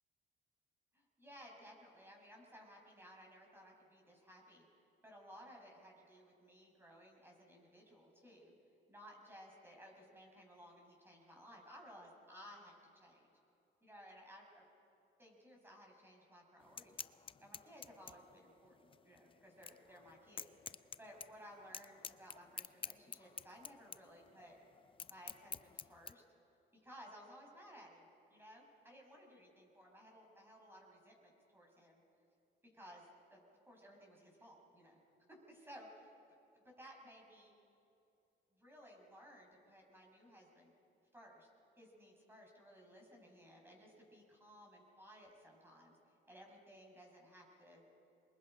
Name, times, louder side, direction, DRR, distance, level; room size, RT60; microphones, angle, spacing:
voice 1, 0.9-4.7 5.0-8.5 8.9-13.3 13.8-14.6 15.2-17.0 17.4-24.6 25.1-26.2 26.8-32.0 32.7-33.4 33.7-35.0 35.5-36.1 36.5-37.5 38.5-40.7 41.1-41.5 41.8-46.0 46.3-47.8, equal, 10° right, 0 dB, 6.2 m, -58 dB
sound 1, 16.6-26.1, left 6 dB, 25° left, 0.4 m, -50 dB
27.0 x 22.0 x 5.1 m, 2.8 s
cardioid pair, 90°, 20 cm